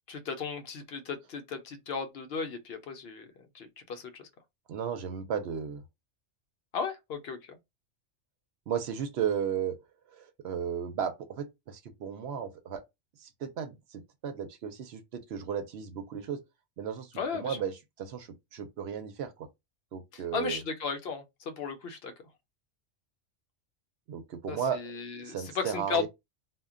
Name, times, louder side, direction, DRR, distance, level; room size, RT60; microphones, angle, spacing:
voice 1, 0.1-3.3 3.5-4.3 6.7-7.6 17.2-17.6 20.1-22.1 24.5-26.1, left 5 dB, 65° left, 0.8 m, -35 dB
voice 2, 4.7-5.8 8.7-9.8 10.1-12.8 13.2-16.4 16.8-19.5 19.9-20.6 24.1-24.8 25.2-26.1, right 8 dB, 70° right, 0.8 m, -35 dB
2.2 x 2.1 x 3.6 m
omnidirectional pair, 1.2 m